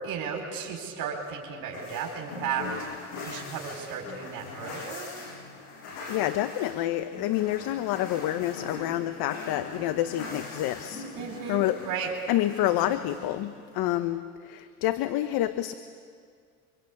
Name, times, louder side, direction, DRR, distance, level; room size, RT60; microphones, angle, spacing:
voice 1, 0.0-2.6 3.2-5.1 11.2-12.1, right 7 dB, 60° right, 0 dB, 4.5 m, -34 dB
sound 1, 1.7-14.0, left 3 dB, 85° left, 6.9 m, -41 dB
voice 2, 6.1-11.0 11.5-15.7, left 13 dB, 65° left, 11 dB, 1.1 m, -28 dB
25.0 x 25.0 x 8.6 m, 2.1 s
supercardioid pair, 85°, 39 cm